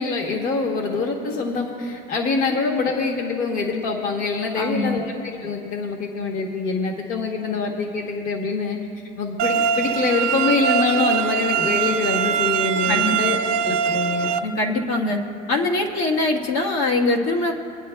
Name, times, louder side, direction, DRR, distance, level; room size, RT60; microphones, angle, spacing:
voice 1, 0.0-8.8 9.2-13.4 13.6-14.4, left 4 dB, 40° left, 2 dB, 1.0 m, -25 dB
voice 2, 4.5-5.0 12.9-13.4 14.4-15.2 15.5-17.5, left 2 dB, 70° left, 0 dB, 1.4 m, -23 dB
sound 1, 9.4-14.4, right 7 dB, 45° right, 0.5 m, -22 dB
24.0 x 9.6 x 2.2 m, 2.6 s
cardioid pair, 165°, 21 cm